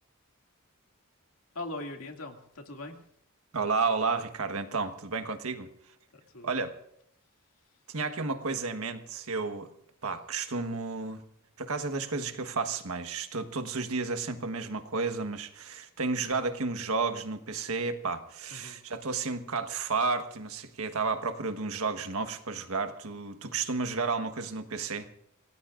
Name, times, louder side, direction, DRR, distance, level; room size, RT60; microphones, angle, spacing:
voice 1, 1.5-3.0 6.1-6.5 18.5-18.8, left 2 dB, 80° left, 3 dB, 2.4 m, -41 dB
voice 2, 3.5-5.7 6.4-6.7 7.9-9.7 10.0-11.2 11.6-25.1, right 4 dB, 85° right, 9 dB, 1.4 m, -32 dB
27.0 x 18.0 x 2.5 m, 0.73 s
head